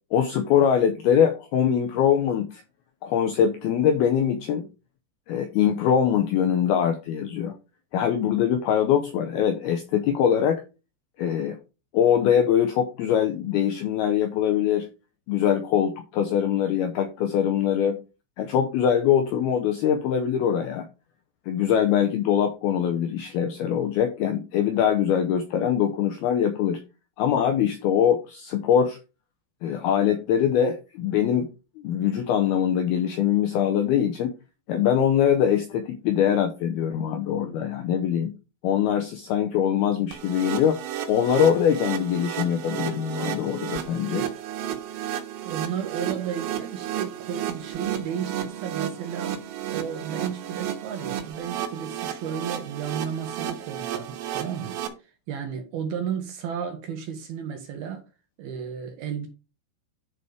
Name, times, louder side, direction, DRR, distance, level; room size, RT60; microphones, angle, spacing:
voice 1, 0.1-2.6 3.0-4.7 5.3-7.5 7.9-10.6 11.2-11.6 11.9-14.9 15.3-18.0 18.4-20.9 21.5-26.8 27.2-29.0 29.6-31.5 31.8-34.3 34.7-38.3 38.6-40.8 41.1-44.3, left 9 dB, 80° left, 2.3 m, -23 dB
sound 1, 40.1-54.9, right 10 dB, 90° right, 3.7 m, -33 dB
voice 2, 45.4-49.4 49.7-58.0 58.4-59.3, right 8 dB, 70° right, 2.7 m, -33 dB
11.0 x 4.3 x 4.9 m
omnidirectional pair, 5.5 m